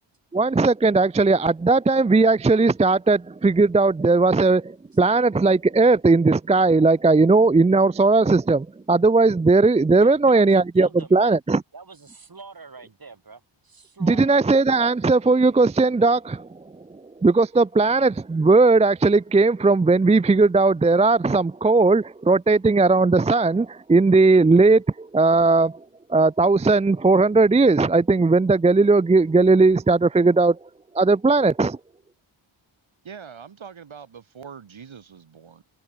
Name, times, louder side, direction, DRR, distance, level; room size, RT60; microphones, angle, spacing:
voice 1, 0.3-11.6 14.0-16.5 17.2-25.8 26.1-30.6 30.9-31.8, right 3 dB, 15° right, 0.4 m, -18 dB
voice 2, 10.0-11.4 11.7-14.4, right 4 dB, 45° right, 5.7 m, -43 dB
voice 3, 33.0-35.6, right 7 dB, 70° right, 2.7 m, -42 dB
wide cardioid pair, 95°, 49 cm